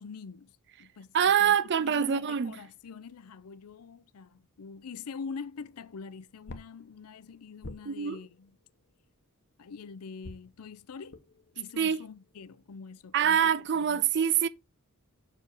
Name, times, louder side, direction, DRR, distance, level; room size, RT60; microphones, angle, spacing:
voice 1, 0.0-8.6 9.6-11.2 11.6-14.1, left 5 dB, 90° left, 0.5 m, -45 dB
voice 2, 1.1-2.6 7.9-8.2 11.8-12.0 13.1-14.5, right 8 dB, 50° right, 0.5 m, -25 dB
sound 1, 5.5-9.6 10.2-13.2, left 1 dB, 50° left, 1.0 m, -52 dB
6.3 x 4.7 x 4.7 m
head